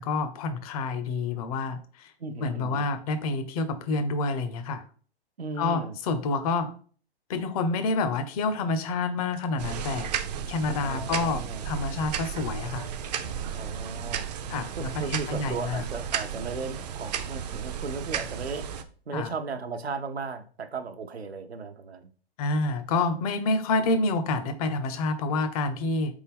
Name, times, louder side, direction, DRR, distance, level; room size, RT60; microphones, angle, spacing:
voice 1, 0.0-2.1 2.4-4.8 5.6-6.7 7.3-10.1 10.5-12.9 14.5-15.8 19.1-19.3 22.4-26.2, left 3 dB, 35° left, 10 dB, 0.7 m, -28 dB
voice 2, 2.2-2.9 5.4-6.0 10.8-11.7 13.3-18.7 19.1-22.1, right 4 dB, 80° right, 7 dB, 0.7 m, -36 dB
sound 1, 9.6-18.8, right 8 dB, 40° right, 0.5 m, -34 dB
4.0 x 3.5 x 3.5 m, 0.43 s
figure-of-eight pair, 115°, 31 cm